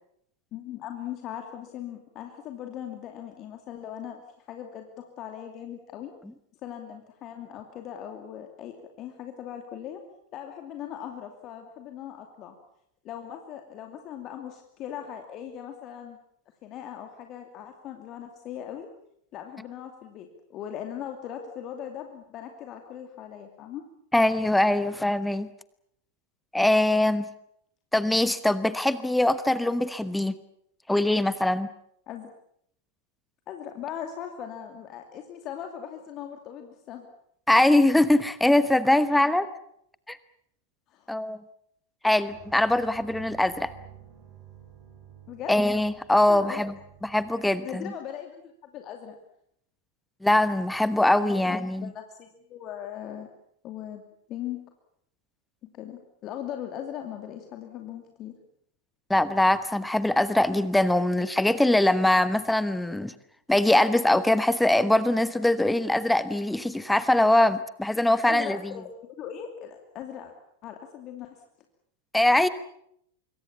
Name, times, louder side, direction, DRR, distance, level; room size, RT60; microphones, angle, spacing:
voice 1, 0.5-4.2 4.5-6.1 6.6-10.0 10.3-12.5 13.0-16.2 16.6-18.9 19.3-23.8 32.1-32.3 33.5-37.1 40.9-41.1 45.3-45.5 46.3-46.6 47.6-49.2 51.2-53.3 53.6-54.0 54.3-54.7 55.7-58.4 68.1-70.3 70.6-71.3, left 10 dB, 35° left, 4 dB, 2.6 m, -39 dB
voice 2, 24.1-25.5 26.5-27.3 27.9-30.4 30.9-31.7 37.5-39.5 40.1-40.2 41.1-41.4 42.0-43.7 45.5-46.7 47.0-47.9 50.2-51.9 59.1-63.1 63.5-68.6 72.1-72.5, left 1 dB, 5° left, 15 dB, 1.1 m, -22 dB
sound 1, 42.3-47.3, right 9 dB, 30° right, 6.4 m, -50 dB
25.5 x 23.5 x 7.2 m, 0.72 s
figure-of-eight pair, 90°, 0 cm